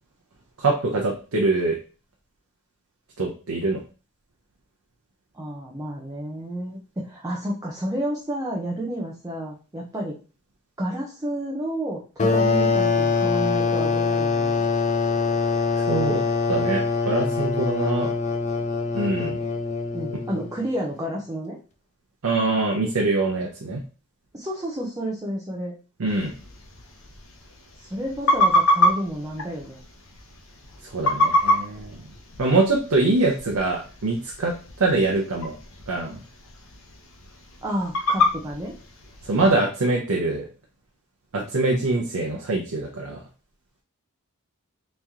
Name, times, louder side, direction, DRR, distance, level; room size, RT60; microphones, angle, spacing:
voice 1, 0.6-1.8 3.2-3.8 15.8-16.2 16.5-18.1 18.9-19.4 22.2-23.8 26.0-26.3 30.9-32.0 32.4-35.6 35.9-36.2 39.2-40.5 41.3-43.2, right 2 dB, 70° right, 0 dB, 0.7 m, -24 dB
voice 2, 5.3-10.2 10.8-14.6 19.9-21.6 24.3-25.7 27.9-29.8 37.6-38.8, right 1 dB, 15° right, -2 dB, 0.5 m, -30 dB
sound 1, 12.2-20.6, left 4 dB, 35° left, 0.5 m, -23 dB
sound 2, 26.1-39.5, left 1 dB, 65° left, 0.8 m, -27 dB
3.1 x 2.8 x 3.5 m, 0.35 s
head